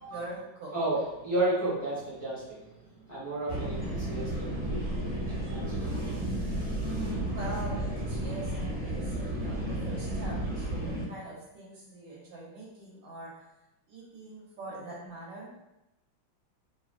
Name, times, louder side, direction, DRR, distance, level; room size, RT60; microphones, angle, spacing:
voice 1, 0.1-0.7 6.8-13.4 13.9-15.5, right 2 dB, 75° right, -3 dB, 1.3 m, -42 dB
voice 2, 0.7-6.9, right 2 dB, 25° left, -11 dB, 1.0 m, -34 dB
sound 1, 3.5-11.0, right 1 dB, 5° right, 0.9 m, -33 dB
3.2 x 2.4 x 2.4 m, 0.91 s
omnidirectional pair, 2.2 m